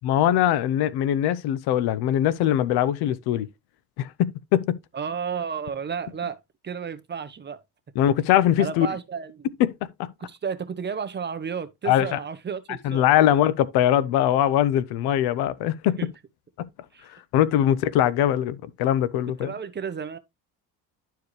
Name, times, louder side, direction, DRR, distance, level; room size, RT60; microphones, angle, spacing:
voice 1, 0.0-3.5 4.0-4.8 8.0-8.9 9.6-10.1 11.8-12.2 12.8-16.1 16.6-16.7 17.3-19.5, left 11 dB, 80° left, 0.8 m, -22 dB
voice 2, 4.9-6.4 6.6-7.6 8.6-9.5 10.2-13.1 16.0-16.1 16.9-17.1 19.4-20.2, right 6 dB, 25° right, 1.1 m, -32 dB
11.5 x 4.6 x 3.2 m
cardioid pair, 110°, 38 cm